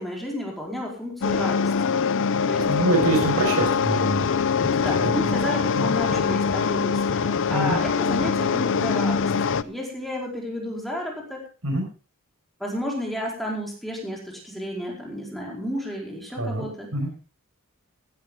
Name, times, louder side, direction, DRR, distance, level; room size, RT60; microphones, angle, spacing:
voice 1, 0.0-1.7 2.4-2.7 4.7-11.4 12.6-16.9, equal, ahead, -2 dB, 4.7 m, -32 dB
sound 1, 1.2-9.6, left 6 dB, 60° left, 0.6 m, -23 dB
voice 2, 2.4-4.3 4.6-5.1 5.8-5.9 7.5-7.8 11.6-11.9 16.4-16.6 16.9-17.1, right 2 dB, 70° right, 3 dB, 5.6 m, -25 dB
16.0 x 13.0 x 3.8 m, 0.35 s
head